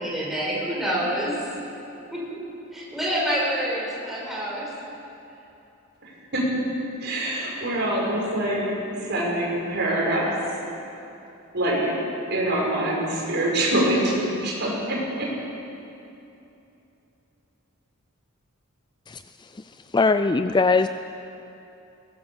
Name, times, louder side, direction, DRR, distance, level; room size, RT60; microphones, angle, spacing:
voice 1, 0.0-1.3 2.1-2.4 2.7-4.7, equal, ahead, -5 dB, 5.4 m, -27 dB
voice 2, 6.0-6.6 7.0-10.6 11.5-11.9 12.3-15.3, right 1 dB, 50° right, -3 dB, 5.8 m, -25 dB
voice 3, 19.1-19.6 19.9-20.9, left 4 dB, 20° left, 10 dB, 0.4 m, -21 dB
22.0 x 18.0 x 7.2 m, 2.9 s
head